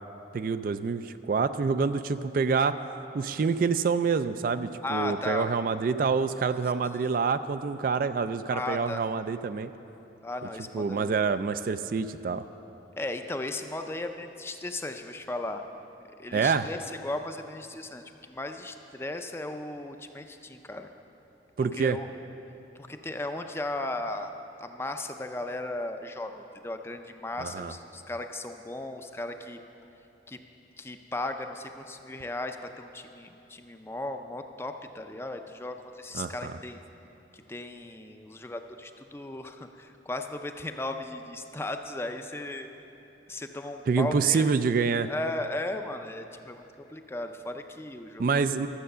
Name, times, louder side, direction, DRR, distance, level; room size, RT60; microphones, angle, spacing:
voice 1, 0.3-2.8 3.1-9.7 10.7-12.4 16.3-16.7 21.6-22.0 27.4-27.7 36.1-36.5 43.9-45.1 48.2-48.7, right 5 dB, 50° right, 11 dB, 0.3 m, -27 dB
voice 2, 4.8-5.5 8.5-9.1 10.2-11.3 12.9-15.6 16.2-20.9 21.7-22.1 22.7-24.3 24.6-29.6 30.3-30.4 30.8-36.8 37.3-42.7 43.3-44.5 45.0-48.5, left 2 dB, 15° left, 6 dB, 0.4 m, -36 dB
12.5 x 7.5 x 6.7 m, 2.9 s
head